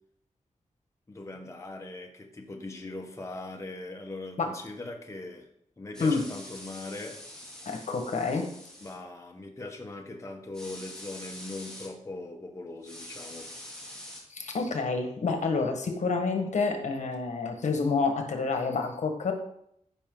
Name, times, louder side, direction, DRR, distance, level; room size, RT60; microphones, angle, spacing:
voice 1, 1.1-5.4 5.8-7.2 8.8-13.5, left 2 dB, 25° left, 2 dB, 1.1 m, -40 dB
sound 1, 5.9-9.0 10.5-11.9 12.8-14.2, left 1 dB, 5° left, 2.4 m, -45 dB
voice 2, 7.6-8.5 14.3-19.3, left 4 dB, 70° left, 4 dB, 1.5 m, -28 dB
14.5 x 5.6 x 3.9 m, 0.73 s
wide cardioid pair, 140°, 13 cm